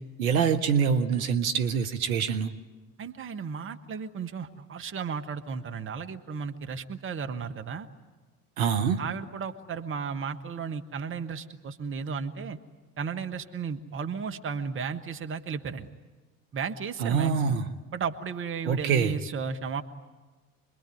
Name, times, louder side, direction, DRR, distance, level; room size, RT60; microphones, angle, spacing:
voice 1, 0.2-2.5 8.6-9.0 17.0-17.6 18.7-19.1, right 6 dB, 65° right, 7 dB, 1.2 m, -25 dB
voice 2, 3.0-7.9 9.0-12.6 13.0-15.9 16.5-17.5 17.9-19.8, right 6 dB, 25° right, 6 dB, 1.3 m, -34 dB
26.0 x 21.5 x 9.3 m, 1.2 s
figure-of-eight pair, 65°, 45 cm